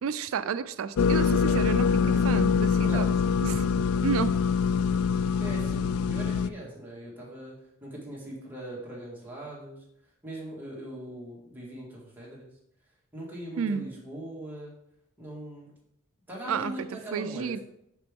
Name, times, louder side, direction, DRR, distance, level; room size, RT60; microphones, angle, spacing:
voice 1, 0.0-3.1 3.4-3.7 4.0-4.4 13.6-13.8 16.5-17.6, right 6 dB, 70° right, 13 dB, 0.4 m, -31 dB
sound 1, 1.0-6.5, left 6 dB, 85° left, 0.3 m, -24 dB
voice 2, 2.8-3.1 5.4-7.5 7.8-9.8 10.2-12.5 13.1-14.7 15.2-15.7 16.3-17.6, right 1 dB, 10° right, -5 dB, 1.9 m, -40 dB
5.9 x 5.9 x 3.6 m, 0.78 s
head